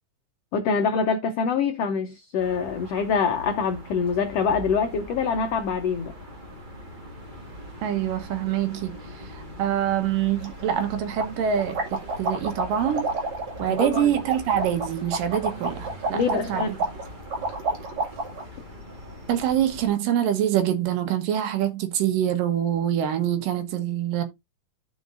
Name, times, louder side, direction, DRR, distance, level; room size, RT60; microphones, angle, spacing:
voice 1, 0.5-6.1 13.8-14.1 16.1-16.7, left 5 dB, 80° left, 1.4 m, -25 dB
sound 1, 2.4-19.9, left 1 dB, 30° right, 0.9 m, -42 dB
voice 2, 7.8-8.9 9.3-13.1 13.6-16.8 19.3-24.2, right 10 dB, 75° right, 2.9 m, -25 dB
sound 2, 10.4-10.5 10.8-10.9 11.2-18.4, right 3 dB, 55° right, 3.6 m, -30 dB
13.0 x 5.3 x 2.5 m
omnidirectional pair, 3.9 m